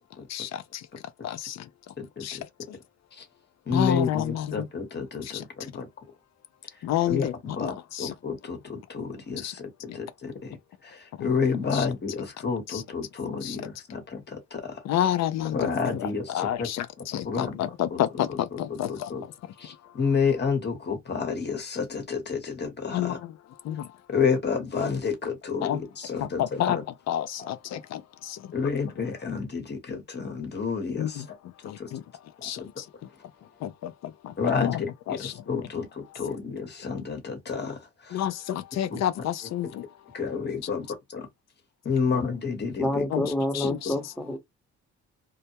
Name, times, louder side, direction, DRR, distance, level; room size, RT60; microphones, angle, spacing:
voice 1, 0.3-0.9 1.2-1.9 2.2-2.8 3.7-4.7 5.2-5.7 6.8-8.1 9.4-9.6 9.9-10.0 11.2-11.3 11.7-11.9 12.7-12.8 13.4-13.6 14.8-20.0 22.9-24.0 25.6-25.8 26.2-26.8 27.1-28.7 31.0-35.7 36.1-36.2 38.1-40.2 40.6-40.8 43.1-43.9, left 11 dB, 60° left, 0.4 m, -31 dB
voice 2, 2.0-2.4 3.1-3.2 3.7-5.9 7.1-7.3 7.6-10.6 10.8-14.7 15.5-16.3 16.6-16.7 17.2-17.6 18.7-19.2 19.6-23.2 24.1-26.8 27.4-27.8 28.5-31.2 31.8-31.9 32.4-32.5 34.4-38.2 38.9-39.0 40.1-41.3 41.8-43.0 43.6-43.7, left 5 dB, 35° left, 1.0 m, -30 dB
voice 3, 42.8-44.4, left 1 dB, 5° left, 0.9 m, -28 dB
2.2 x 2.1 x 2.7 m
cardioid pair, 90°, 30 cm